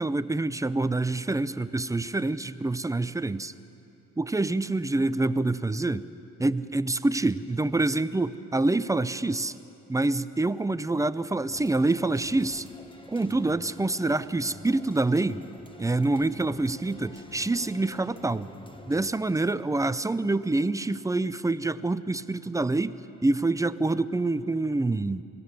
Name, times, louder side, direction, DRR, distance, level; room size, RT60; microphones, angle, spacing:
voice 1, 0.0-3.5 4.2-6.1 6.4-9.5 9.9-12.7 13.1-15.4 15.8-18.5 18.9-25.2, right 2 dB, 10° right, 15 dB, 0.5 m, -26 dB
sound 1, 11.5-19.1, left 2 dB, 15° left, 1.4 m, -48 dB
24.5 x 16.5 x 6.9 m, 3.0 s
cardioid pair, 90°, 30 cm